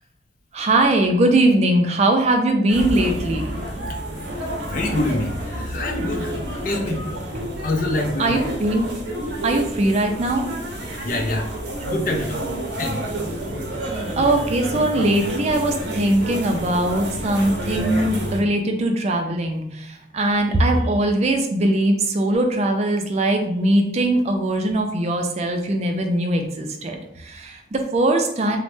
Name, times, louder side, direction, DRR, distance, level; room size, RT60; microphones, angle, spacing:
voice 1, 0.5-3.6 8.2-8.9 9.4-10.5 13.9-28.6, right 1 dB, 40° right, 4 dB, 0.3 m, -21 dB
sound 1, 2.7-18.4, right 1 dB, 80° right, 0.6 m, -29 dB
voice 2, 4.7-6.3 6.6-7.0 7.6-8.4 11.0-11.5 11.8-12.4 12.8-13.0, left 2 dB, 50° left, 3 dB, 0.5 m, -25 dB
3.0 x 2.1 x 3.1 m, 0.75 s
head